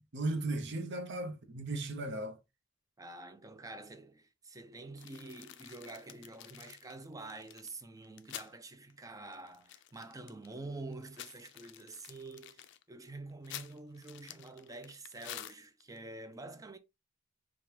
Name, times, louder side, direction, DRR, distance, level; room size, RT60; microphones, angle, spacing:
voice 1, 0.0-2.4, right 2 dB, 60° right, 0.8 m, -36 dB
voice 2, 3.0-16.8, right 2 dB, 15° right, 0.5 m, -47 dB
sound 1, 5.0-8.5 8.9-9.0 9.3-10.5 10.9-16.0, left 12 dB, 60° left, 0.4 m, -49 dB
4.9 x 2.4 x 2.9 m
head